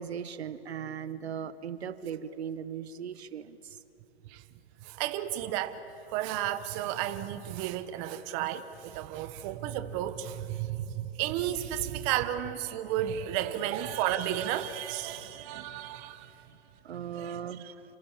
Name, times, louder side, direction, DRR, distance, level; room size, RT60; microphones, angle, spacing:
voice 1, 0.0-3.8 15.1-15.8 16.5-16.6 16.8-17.8, right 8 dB, 80° right, 1.3 m, -39 dB
voice 2, 4.8-5.8 6.1-16.4 17.2-17.4, right 12 dB, 30° right, 1.2 m, -33 dB
28.0 x 27.5 x 7.4 m
hypercardioid pair, 145°, 32 cm